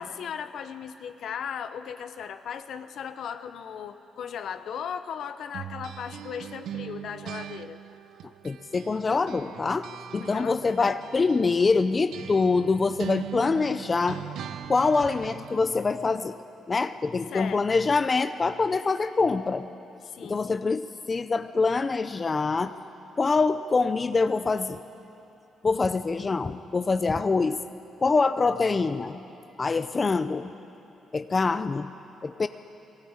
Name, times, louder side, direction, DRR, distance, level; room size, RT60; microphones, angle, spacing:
voice 1, 0.0-7.8 10.2-11.0 17.3-17.7 20.1-20.6, left 7 dB, 65° left, 10 dB, 0.9 m, -37 dB
sound 1, 5.5-9.0 9.3-15.7, right 10 dB, 70° right, 0.6 m, -40 dB
voice 2, 8.4-9.9 10.1-14.2 14.7-16.4 16.7-19.7 20.2-22.8 23.2-24.8 25.6-27.6 28.0-29.2 29.6-30.5 31.1-31.9 32.2-32.5, left 4 dB, 30° left, 11 dB, 0.5 m, -25 dB
19.0 x 16.5 x 8.8 m, 3.0 s
cardioid pair, 90°, 0 cm